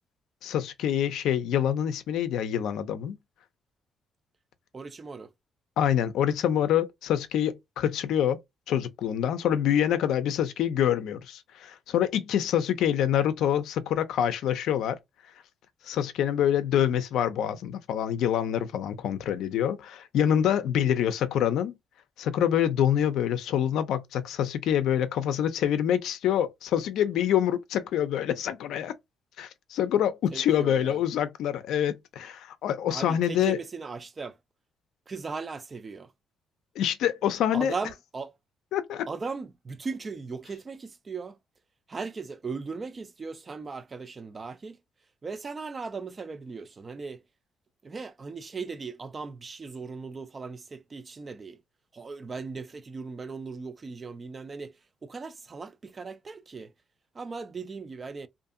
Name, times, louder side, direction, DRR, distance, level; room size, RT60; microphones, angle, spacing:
voice 1, 0.4-3.2 5.8-8.4 8.7-15.0 15.8-21.7 22.2-28.9 29.4-33.6 36.8-37.7 38.7-39.1, left 10 dB, 80° left, 0.4 m, -26 dB
voice 2, 4.7-5.3 30.3-31.0 32.9-34.4 35.1-36.1 37.5-38.4 39.1-41.4 41.9-44.8 45.2-47.2 47.8-51.6 51.9-56.7 57.1-58.3, right 4 dB, 35° right, 0.4 m, -38 dB
2.6 x 2.5 x 2.4 m
cardioid pair, 90°, 0 cm